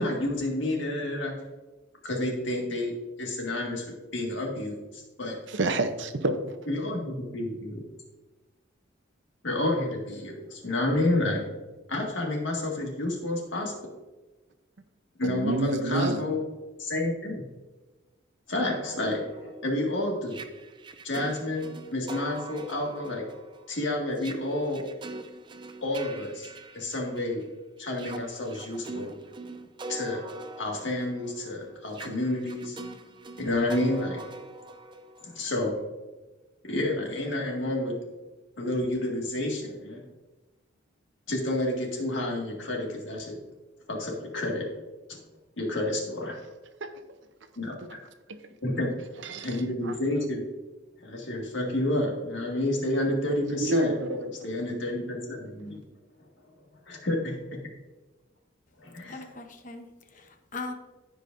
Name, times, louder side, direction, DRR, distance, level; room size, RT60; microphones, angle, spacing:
voice 1, 0.0-1.3 2.0-2.9 3.2-5.4 6.7-7.8 9.4-11.4 11.9-13.7 15.2-16.4 16.8-17.4 18.5-20.4 21.0-23.2 23.7-24.8 25.8-26.5 26.7-27.4 27.8-29.1 29.9-30.2 30.6-32.8 33.4-34.2 35.2-35.8 36.6-37.9 38.6-40.0 41.3-43.4 43.9-44.7 45.1-45.2 45.6-46.4 47.6-47.8 48.6-49.0 49.4-50.4 51.0-53.9 54.4-55.8 56.9-57.2 58.8-59.2, left 1 dB, 70° left, -1 dB, 1.9 m, -29 dB
voice 2, 5.5-6.6 15.2-16.2 46.8-46.9 49.2-49.6 49.8-49.9 53.5-54.3, right 2 dB, 70° right, 10 dB, 0.7 m, -28 dB
sound 1, 18.6-27.4 27.9-35.7, right 2 dB, 25° right, 0.4 m, -43 dB
voice 3, 59.1-60.7, left 3 dB, 40° left, 5 dB, 0.9 m, -40 dB
15.0 x 5.1 x 2.6 m, 1.2 s
head